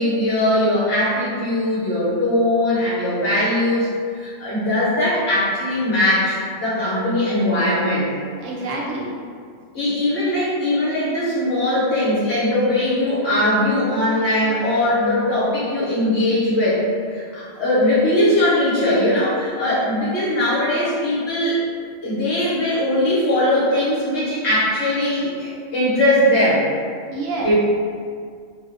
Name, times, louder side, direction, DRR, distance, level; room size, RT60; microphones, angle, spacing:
voice 1, 0.0-8.1 9.7-16.8 17.1-21.6 22.0-26.6 27.4-27.5, left 1 dB, 60° left, -10 dB, 0.9 m, -20 dB
voice 2, 8.4-9.1 27.1-27.5, right 2 dB, 75° right, -4 dB, 0.9 m, -27 dB
2.6 x 2.0 x 2.4 m, 2.1 s
omnidirectional pair, 1.4 m